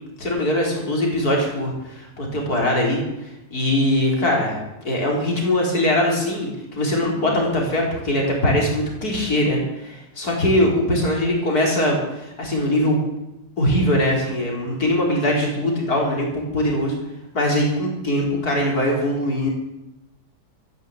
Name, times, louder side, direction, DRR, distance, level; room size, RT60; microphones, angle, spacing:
voice 1, 0.2-13.0 13.6-16.9 17.3-19.5, left 1 dB, 60° left, -1 dB, 4.6 m, -21 dB
14.0 x 10.5 x 8.1 m, 0.91 s
omnidirectional pair, 1.8 m